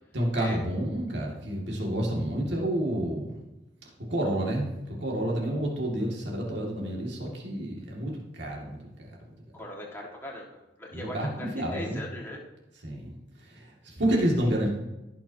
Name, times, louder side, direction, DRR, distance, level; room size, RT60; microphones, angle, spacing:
voice 1, 0.1-3.4 4.1-9.4 10.9-12.0 12.8-14.7, right 1 dB, 70° right, -2 dB, 2.2 m, -30 dB
voice 2, 9.5-12.4, left 1 dB, 10° left, -3 dB, 1.7 m, -39 dB
16.0 x 6.1 x 2.8 m, 0.99 s
head